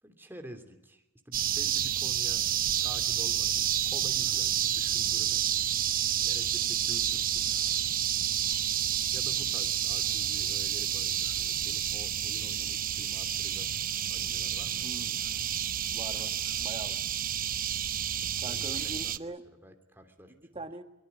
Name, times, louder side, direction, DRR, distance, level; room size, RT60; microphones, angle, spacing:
voice 1, 0.0-2.5 2.8-5.7 6.2-7.5 9.1-13.7 14.1-14.9 18.2-20.7, equal, 10° right, 5 dB, 3.1 m, -49 dB
sound 1, 1.3-19.2, right 10 dB, 45° right, 0.9 m, -30 dB
voice 2, 14.8-15.2 15.9-16.3 16.6-17.0 18.4-19.4 20.3-20.8, right 2 dB, 25° right, 6 dB, 1.9 m, -42 dB
23.5 x 22.5 x 8.4 m, 0.94 s
head